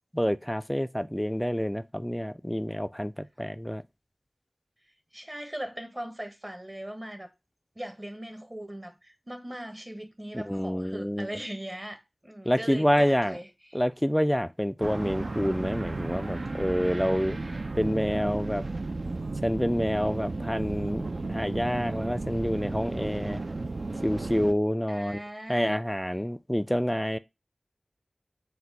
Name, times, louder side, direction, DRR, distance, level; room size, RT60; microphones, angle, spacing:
voice 1, 0.1-3.8 10.3-11.3 12.5-13.4 13.7-17.4 17.8-18.6 19.4-23.4 24.0-25.2 25.5-27.2, equal, 5° left, 0.3 m, -27 dB
voice 2, 5.1-7.3 7.7-13.8 24.9-25.8, right 1 dB, 30° right, 0.9 m, -39 dB
sound 1, 14.8-24.5, right 3 dB, 70° right, 0.4 m, -34 dB
4.2 x 2.2 x 4.0 m
wide cardioid pair, 45°, 0 cm